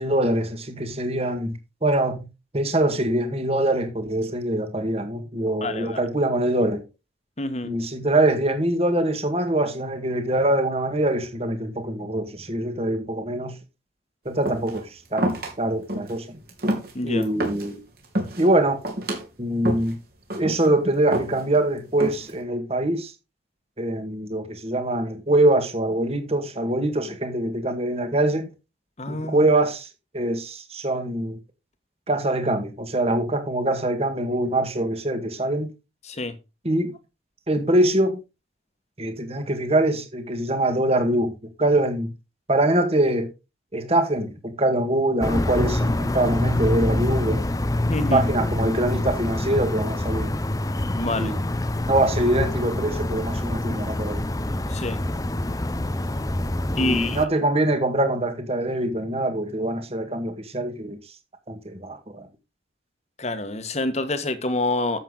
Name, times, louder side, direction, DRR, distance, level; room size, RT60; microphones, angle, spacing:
voice 1, 0.0-1.5 1.8-2.2 2.5-6.8 7.6-13.5 14.3-15.3 15.6-16.3 17.0-17.8 18.4-18.8 19.4-20.0 20.3-23.1 23.8-28.5 29.1-29.9 30.1-31.4 32.1-35.7 36.6-36.9 37.5-38.2 39.0-41.3 41.6-42.1 42.5-43.3 43.7-47.5 48.1-50.3 51.2-51.4 51.9-54.3 56.8-61.0 61.5-62.3, right 1 dB, 35° right, 1.9 m, -23 dB
voice 2, 5.6-6.0 7.4-7.7 16.9-17.3 29.0-29.5 36.0-36.3 47.9-48.3 51.0-51.3 54.7-55.0 56.8-57.2 63.2-65.0, left 2 dB, 35° left, 1.5 m, -27 dB
sound 1, 14.4-14.8 15.2-15.5 15.9-16.2 16.5-17.7 18.0-18.5 18.8-19.2 19.6-19.9 20.3-20.7 21.1-21.6 22.0-22.4, right 1 dB, 55° right, 3.7 m, -27 dB
sound 2, 45.2-57.3, left 1 dB, 20° left, 0.7 m, -26 dB
10.5 x 8.0 x 4.0 m
head